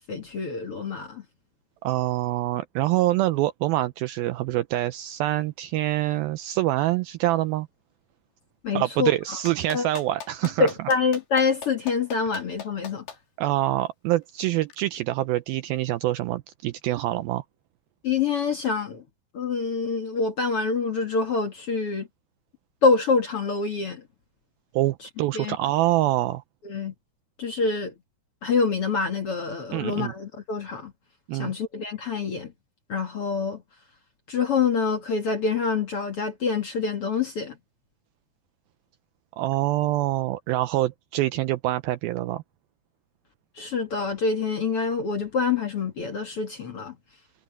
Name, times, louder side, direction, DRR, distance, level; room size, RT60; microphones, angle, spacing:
voice 1, 0.1-1.2 8.6-9.4 9.7-9.9 10.6-13.0 18.0-19.0 19.3-22.1 22.8-24.0 25.3-25.6 26.6-26.9 27.4-27.9 28.4-30.9 31.3-32.5 32.9-33.6 34.3-37.6 43.6-46.9, left 4 dB, 45° left, 2.0 m, -26 dB
voice 2, 1.8-7.7 8.7-10.7 13.4-17.4 24.7-26.4 29.7-30.1 31.3-31.5 39.4-42.4, right 15 dB, 85° right, 2.1 m, -25 dB
Clapping, 9.5-13.2 14.7-14.8, left 7 dB, 65° left, 4.8 m, -39 dB
omnidirectional pair, 4.9 m